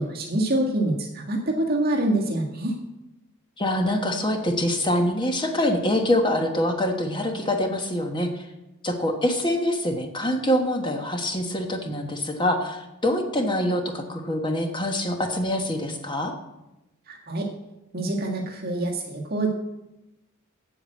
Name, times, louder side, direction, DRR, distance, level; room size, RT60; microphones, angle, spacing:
voice 1, 0.0-2.8 17.1-17.5 17.9-19.5, right 1 dB, 45° right, -1 dB, 1.7 m, -26 dB
voice 2, 3.6-8.4 8.8-16.3, left 1 dB, 20° left, 4 dB, 1.2 m, -25 dB
8.4 x 7.8 x 7.7 m, 0.94 s
head